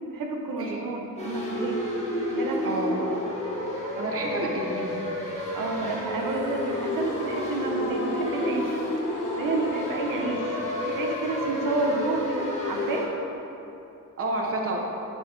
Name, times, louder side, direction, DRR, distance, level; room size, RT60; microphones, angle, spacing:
voice 1, 0.1-1.8 2.3-2.8 5.5-8.8 9.1-13.1, right 3 dB, 85° right, 1 dB, 0.7 m, -30 dB
sound 1, 1.2-13.0, left 1 dB, 20° left, 1.0 m, -31 dB
voice 2, 2.6-3.1 4.0-5.0 14.2-14.8, right 1 dB, 45° right, -1 dB, 0.7 m, -29 dB
sound 2, 6.3-13.3, left 3 dB, 65° left, 0.7 m, -39 dB
8.4 x 3.9 x 3.2 m, 2.9 s
wide cardioid pair, 165°, 32 cm